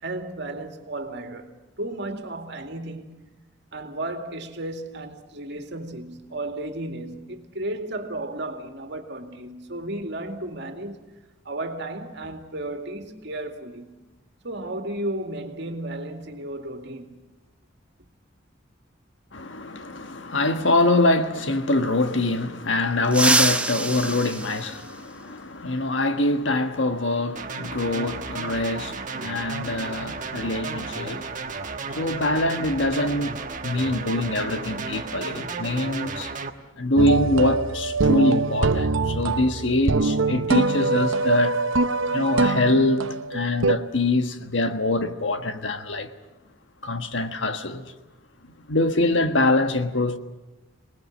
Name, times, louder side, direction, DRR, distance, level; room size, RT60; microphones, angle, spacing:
voice 1, 0.0-3.3 3.7-11.0 11.4-14.0 14.4-17.2, right 1 dB, 60° right, 2.3 m, -34 dB
voice 2, 19.3-31.4 31.9-33.3 33.6-36.3 36.8-41.6 42.1-46.1 46.8-47.9 48.7-50.2, left 2 dB, 65° left, 1.5 m, -24 dB
sound 1, 23.0-25.5 27.1-27.2 28.4-28.5 30.2-30.3 30.7-30.9 31.4-33.6 33.8-34.1 34.5-34.9, right 2 dB, 5° right, 0.9 m, -27 dB
sound 2, 27.4-36.5, right 4 dB, 40° right, 1.4 m, -33 dB
sound 3, 37.0-43.8, right 3 dB, 85° right, 0.8 m, -23 dB
26.5 x 19.5 x 7.4 m
head